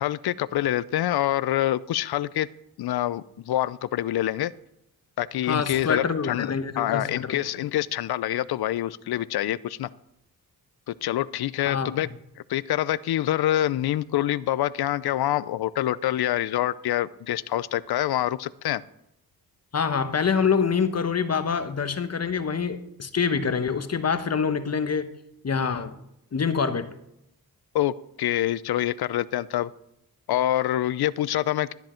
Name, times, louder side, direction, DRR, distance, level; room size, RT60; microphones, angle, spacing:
voice 1, 0.0-2.5 2.8-4.5 5.2-9.9 10.9-12.1 12.5-18.8 27.7-29.7 30.3-31.7, left 13 dB, 75° left, 0.6 m, -26 dB
voice 2, 5.4-7.4 11.7-12.0 19.7-25.1 25.4-26.0 26.3-26.9, left 6 dB, 40° left, 1.1 m, -26 dB
13.0 x 10.5 x 4.4 m
cardioid pair, 75°, 38 cm